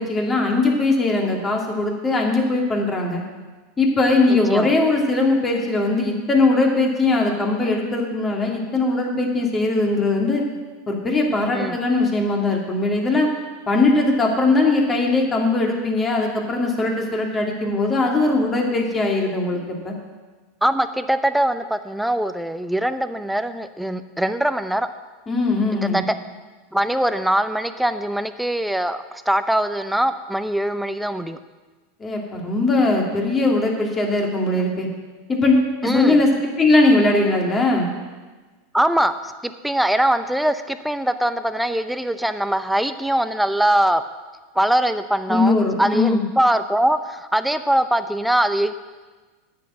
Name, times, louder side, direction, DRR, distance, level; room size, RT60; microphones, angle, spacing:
voice 1, 0.0-3.2 3.8-10.4 10.9-13.3 13.7-19.9 25.3-26.0 32.0-34.9 35.3-36.3 36.6-37.9 45.3-46.2, left 2 dB, 25° left, 1 dB, 2.6 m, -20 dB
voice 2, 20.6-24.9 25.8-26.1 26.7-31.4 35.8-36.2 38.7-44.0 44.6-48.7, right 1 dB, 5° right, 11 dB, 0.7 m, -22 dB
9.4 x 7.8 x 7.6 m, 1.3 s
hypercardioid pair, 90°, 0 cm